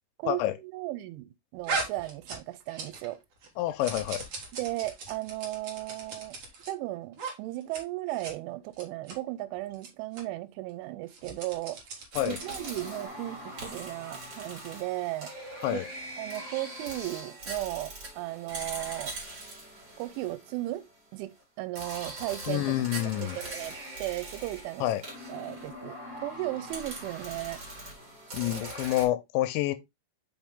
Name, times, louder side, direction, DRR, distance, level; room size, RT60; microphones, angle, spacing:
voice 1, 0.2-3.2 4.5-6.4 6.7-11.8 12.3-15.3 15.7-15.8 16.2-19.1 20.0-20.9 21.1-22.7 23.2-23.7 24.0-24.9 25.3-27.6, right 17 dB, 90° right, 3.2 m, -36 dB
sound 1, 1.6-3.1 3.4-6.7 7.1-7.3 7.6-7.8 8.1-8.3 8.7-9.1 9.7-9.9 10.1-10.2 11.0-12.9, right 4 dB, 65° right, 1.4 m, -38 dB
voice 2, 3.6-4.2 12.2-12.4 15.6-15.9 22.5-23.4 24.8-25.0 28.3-29.8, left 14 dB, 80° left, 2.8 m, -28 dB
sound 2, 12.1-21.0 21.8-29.0, right 1 dB, 30° right, 2.8 m, -41 dB
5.7 x 5.7 x 3.5 m
omnidirectional pair, 5.4 m